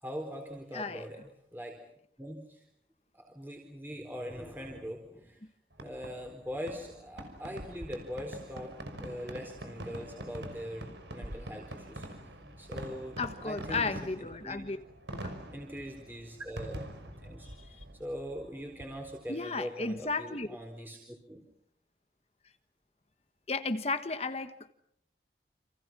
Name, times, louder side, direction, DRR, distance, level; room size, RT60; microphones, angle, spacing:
voice 1, 0.0-1.8 2.2-2.6 3.1-5.4 5.8-8.7 9.0-12.3 12.6-14.7 15.5-16.8 17.2-21.4, equal, 10° right, 2 dB, 4.1 m, -42 dB
voice 2, 0.7-1.0 13.2-14.8 15.1-15.3 17.5-17.6 19.3-20.5 23.5-24.7, left 3 dB, 35° left, 9 dB, 1.2 m, -34 dB
Fireworks, 5.7-19.3, right 1 dB, 90° right, 5.6 m, -44 dB
30.0 x 27.5 x 6.1 m, 0.71 s
head